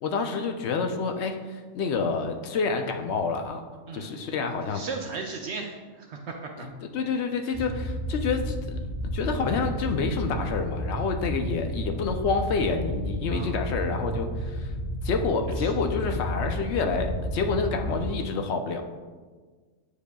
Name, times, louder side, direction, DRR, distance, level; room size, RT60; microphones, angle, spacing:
voice 1, 0.0-3.6 3.9-4.8 6.6-8.8 9.1-14.7 15.0-18.9, left 4 dB, 65° left, 5 dB, 0.8 m, -28 dB
voice 2, 4.7-6.7 13.3-13.6 15.6-15.7, right 4 dB, 65° right, 2 dB, 0.8 m, -36 dB
sound 1, 7.5-18.1, equal, 5° right, 1.0 m, -32 dB
8.3 x 5.0 x 2.3 m, 1.4 s
omnidirectional pair, 1.4 m